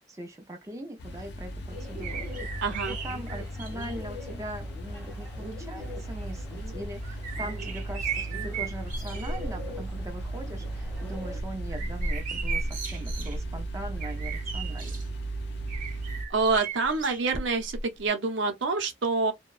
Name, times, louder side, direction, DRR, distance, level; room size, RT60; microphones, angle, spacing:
voice 1, 0.0-2.6 2.9-15.0, right 1 dB, 15° right, 0.5 m, -41 dB
sound 1, 1.0-16.3, right 1 dB, 60° left, 0.5 m, -36 dB
Bird, 1.7-11.4, left 1 dB, ahead, 1.2 m, -45 dB
sound 2, 2.0-4.1 4.9-5.0 6.6-9.5 9.9-10.3 10.7-15.0 15.7-17.8 18.1-18.2, right 3 dB, 45° right, 0.8 m, -36 dB
voice 2, 2.6-3.0 16.3-19.3, right 4 dB, 80° right, 0.7 m, -27 dB
2.8 x 2.2 x 2.3 m
head